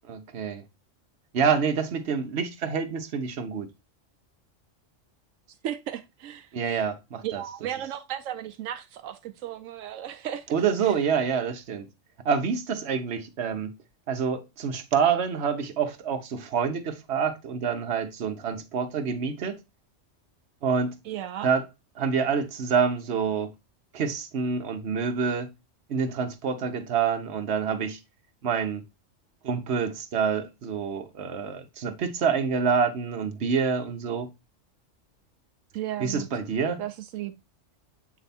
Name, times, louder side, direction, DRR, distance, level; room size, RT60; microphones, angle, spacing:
voice 1, 0.1-0.6 1.3-3.7 6.5-7.4 10.5-11.9 12.2-13.7 14.1-19.6 20.6-20.9 21.4-21.6 22.0-23.5 23.9-25.5 25.9-28.0 28.4-28.8 29.4-34.3 36.0-36.8, right 6 dB, 60° right, 1.1 m, -27 dB
voice 2, 5.6-6.8 7.2-10.5 10.8-11.0 21.0-21.5 35.7-36.3 36.8-37.3, right 11 dB, 85° right, 1.0 m, -35 dB
8.1 x 3.4 x 4.1 m
omnidirectional pair, 1.3 m